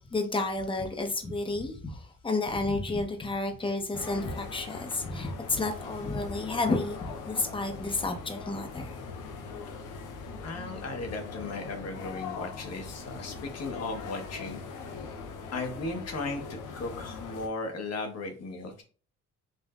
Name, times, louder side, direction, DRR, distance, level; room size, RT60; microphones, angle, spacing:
voice 1, 0.1-8.9, left 2 dB, 15° left, 5 dB, 0.8 m, -31 dB
sound 1, 3.9-17.5, left 5 dB, 85° left, 0.7 m, -41 dB
voice 2, 10.4-14.6 15.5-18.8, left 3 dB, 55° left, 4 dB, 1.2 m, -36 dB
5.2 x 2.5 x 2.4 m, 0.39 s
cardioid pair, 90°, 30 cm